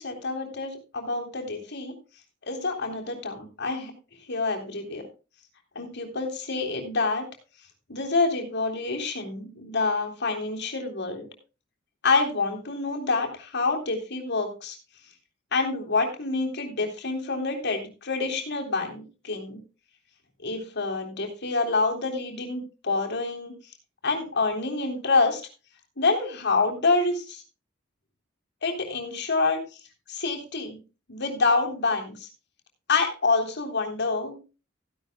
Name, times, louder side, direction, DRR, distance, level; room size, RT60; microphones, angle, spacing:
voice 1, 0.0-2.0 2.5-3.9 4.3-5.1 5.8-7.2 7.9-11.3 12.0-14.8 15.5-19.6 20.4-23.5 24.0-25.4 26.0-27.4 28.6-29.6 30.1-30.8 31.1-32.3 32.9-34.4, left 3 dB, 60° left, 2 dB, 3.6 m, -27 dB
15.5 x 11.5 x 2.2 m, 0.31 s
head